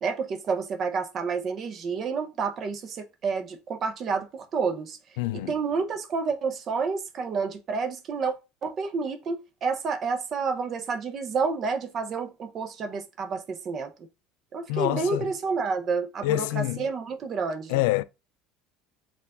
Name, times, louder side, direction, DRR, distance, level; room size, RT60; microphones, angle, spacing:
voice 1, 0.0-5.0 5.3-8.3 8.6-13.9 14.5-17.8, right 5 dB, 30° right, 0.6 m, -29 dB
voice 2, 5.2-5.5 14.7-15.3 16.2-16.9 17.7-18.0, left 16 dB, 85° left, 0.3 m, -26 dB
4.5 x 2.4 x 3.5 m
cardioid pair, 175°, 0 cm